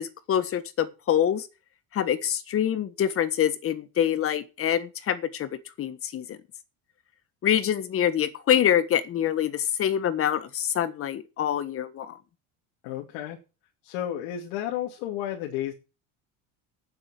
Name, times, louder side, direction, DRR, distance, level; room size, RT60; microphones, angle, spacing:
voice 1, 0.0-1.5 1.9-5.5 5.8-6.4 7.4-12.2, left 10 dB, 35° left, 1.4 m, -25 dB
voice 2, 12.8-13.4 13.8-15.7, left 11 dB, 85° left, 2.8 m, -32 dB
9.2 x 7.7 x 9.1 m
cardioid pair, 150°, 38 cm